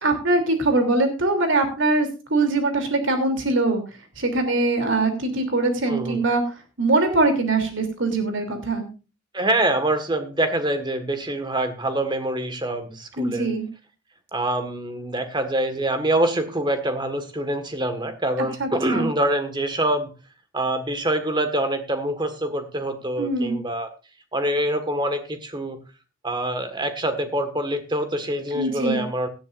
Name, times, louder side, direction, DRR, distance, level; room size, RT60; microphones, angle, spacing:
voice 1, 0.0-3.8 4.2-6.4 6.8-8.9 13.2-13.7 18.6-19.1 23.2-23.6 28.5-29.0, right 2 dB, 70° right, 5 dB, 3.1 m, -22 dB
voice 2, 5.9-6.2 9.3-13.5 14.3-20.1 20.5-23.9 24.3-25.8 26.2-29.3, right 1 dB, 25° right, 8 dB, 1.7 m, -25 dB
17.5 x 11.0 x 2.6 m, 0.31 s
head